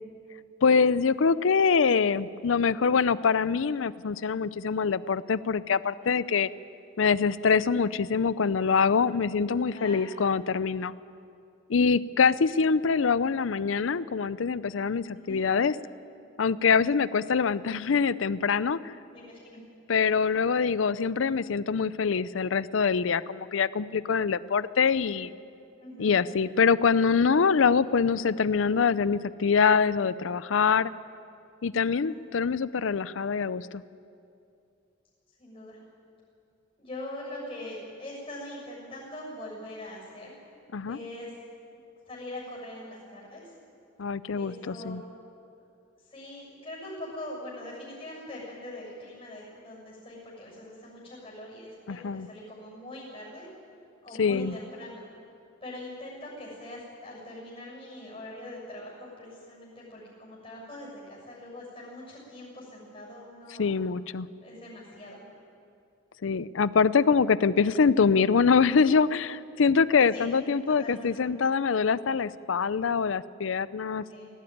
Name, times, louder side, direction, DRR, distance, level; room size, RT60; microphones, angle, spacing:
voice 1, 0.6-6.5 7.0-10.9 11.7-15.7 16.4-18.9 19.9-25.3 26.0-30.9 31.6-33.8 40.7-41.0 44.0-45.0 51.9-52.3 54.2-54.5 63.6-64.3 66.2-74.0, left 5 dB, 85° left, 17 dB, 0.5 m, -24 dB
voice 2, 9.6-10.1 12.3-12.4 15.1-15.5 19.1-19.6 25.8-26.1 31.8-32.1 35.4-35.8 36.8-40.4 40.9-41.3 42.1-43.4 44.3-45.1 46.1-53.5 54.0-55.1 55.6-63.7 64.4-65.3 70.1-70.3 70.7-71.3 74.1-74.3, left 1 dB, 30° left, -4 dB, 7.1 m, -42 dB
18.5 x 17.0 x 9.3 m, 2.5 s
head